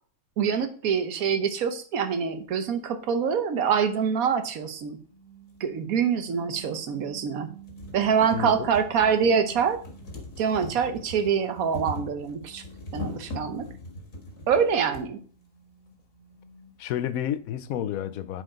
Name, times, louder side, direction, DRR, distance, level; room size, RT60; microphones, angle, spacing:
voice 1, 0.4-5.0 5.6-7.5 7.9-9.8 10.4-12.6 12.9-13.7 14.5-15.2, right 7 dB, 90° right, 1.4 m, -25 dB
sound 1, 5.1-10.3 10.7-16.9, right 6 dB, 35° right, 2.4 m, -50 dB
sound 2, 5.5-5.6 6.6-6.7 7.1-7.2 7.5-15.1 16.0-16.1 16.3-16.4, left 2 dB, 70° left, 2.3 m, -40 dB
voice 2, 8.3-8.7 16.8-18.4, left 10 dB, 90° left, 1.1 m, -30 dB
9.0 x 4.9 x 3.8 m
omnidirectional pair, 1.4 m